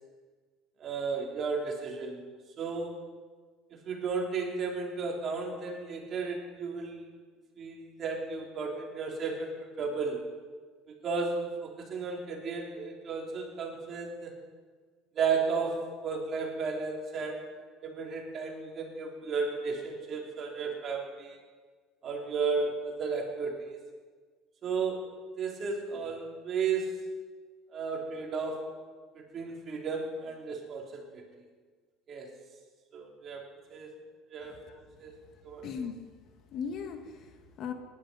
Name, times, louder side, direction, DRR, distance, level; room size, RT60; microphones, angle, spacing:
voice 1, 0.8-2.2 2.6-3.0 3.7-7.1 7.6-10.2 10.9-14.3 15.1-21.4 22.0-23.8 24.6-25.1 25.4-27.0 27.7-28.7 29.1-31.2 32.1-32.3 32.9-34.0 34.3-35.1 35.4-35.7, right 4 dB, 40° right, 0 dB, 3.5 m, -34 dB
voice 2, 35.6-36.0 36.5-37.7, left 6 dB, 55° left, 6 dB, 1.7 m, -38 dB
18.0 x 11.0 x 5.6 m, 1.5 s
supercardioid pair, 115°, 0 cm